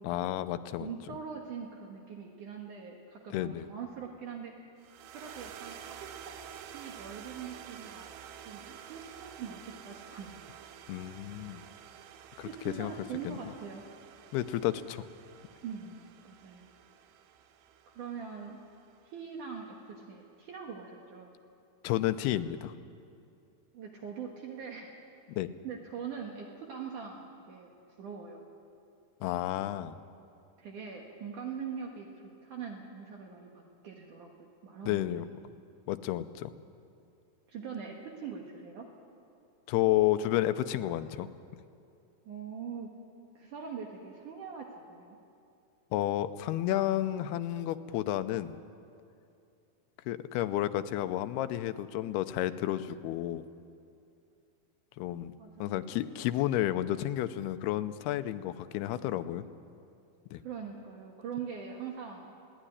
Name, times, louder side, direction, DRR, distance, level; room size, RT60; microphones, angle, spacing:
voice 1, 0.0-0.9 3.3-3.7 10.9-11.6 12.4-12.5 12.8-12.9 13.3-13.4 14.3-15.0 21.8-22.7 25.3-25.5 29.2-30.0 34.9-35.2 35.9-36.5 39.7-41.3 45.9-48.6 50.1-53.5 55.0-55.3 55.6-59.4 60.3-60.4, left 13 dB, 85° left, 11 dB, 2.7 m, -31 dB
voice 2, 0.8-4.5 5.1-5.7 6.0-6.3 6.7-8.2 8.5-10.4 12.4-13.8 15.6-16.7 17.9-18.6 19.0-21.3 23.7-24.9 25.6-27.7 28.0-28.4 29.6-29.7 30.6-35.1 37.5-38.9 42.3-42.9 43.4-45.2 55.4-55.8 60.4-62.3, right 6 dB, 60° right, 1 dB, 2.7 m, -42 dB
sound 1, 4.8-19.2, right 9 dB, 90° right, 3.0 m, -50 dB
21.0 x 17.5 x 10.0 m, 2.6 s
omnidirectional pair, 4.5 m